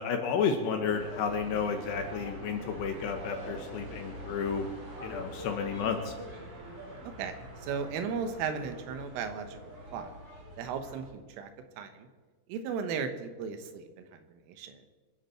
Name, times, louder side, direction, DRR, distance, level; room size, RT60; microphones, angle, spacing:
voice 1, 0.0-4.7 5.0-6.1, left 6 dB, 70° left, 4 dB, 2.9 m, -31 dB
sound 1, 0.8-11.1, equal, 40° right, 6.0 m, -45 dB
voice 2, 7.0-9.6 9.9-10.1 10.6-11.5 11.8-12.1 12.5-14.8, right 6 dB, 80° right, 8 dB, 3.7 m, -36 dB
25.0 x 10.5 x 4.5 m, 1.3 s
omnidirectional pair, 5.8 m